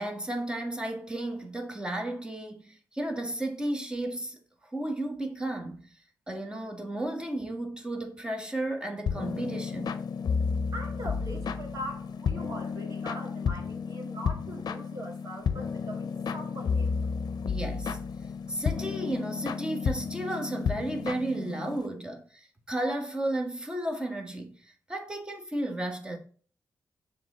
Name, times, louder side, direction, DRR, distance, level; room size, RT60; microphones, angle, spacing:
voice 1, 0.0-5.9 6.3-10.0 17.4-18.0 18.5-26.2, right 1 dB, 10° right, 1.3 m, -33 dB
sound 1, 9.1-21.9, left 5 dB, 65° left, 0.6 m, -32 dB
voice 2, 10.7-17.0, right 1 dB, 45° right, 2.1 m, -41 dB
7.2 x 3.7 x 4.2 m
cardioid pair, 105°, 7 cm